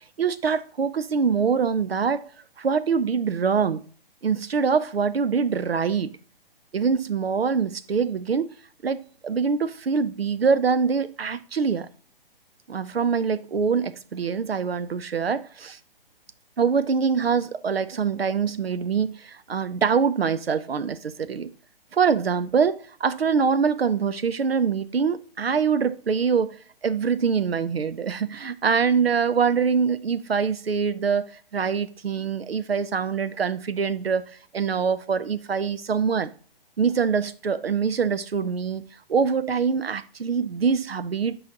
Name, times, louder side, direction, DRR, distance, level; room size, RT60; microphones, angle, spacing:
voice 1, 0.2-2.2 2.6-3.8 4.2-6.1 6.7-8.5 8.8-11.9 12.7-15.8 16.6-21.5 21.9-26.6 26.8-31.3 31.5-34.3 34.5-36.3 36.8-38.8 39.1-41.4, right 6 dB, 90° right, 0.6 m, -24 dB
8.4 x 5.1 x 2.7 m
figure-of-eight pair, 130°, 29 cm